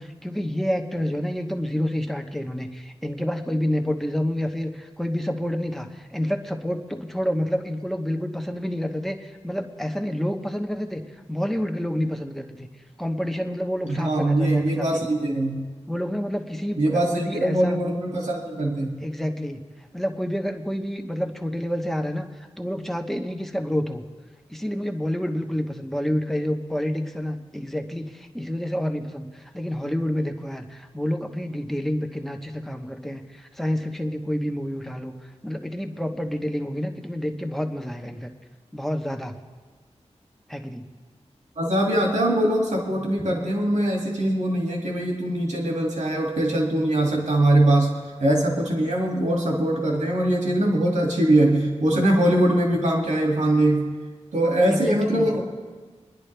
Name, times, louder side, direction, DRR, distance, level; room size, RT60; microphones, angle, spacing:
voice 1, 0.0-11.0 11.3-12.7 13.0-15.1 15.9-17.8 19.0-19.6 19.9-22.3 22.6-24.0 24.5-35.1 35.4-38.3 38.7-39.3 40.5-40.8 54.7-55.3, equal, ahead, 4 dB, 1.1 m, -28 dB
voice 2, 13.8-15.7 16.8-19.0 41.6-47.9 48.2-53.9 54.3-55.4, right 1 dB, 85° right, -1 dB, 2.4 m, -22 dB
25.5 x 10.5 x 3.4 m, 1.4 s
wide cardioid pair, 85°, 12 cm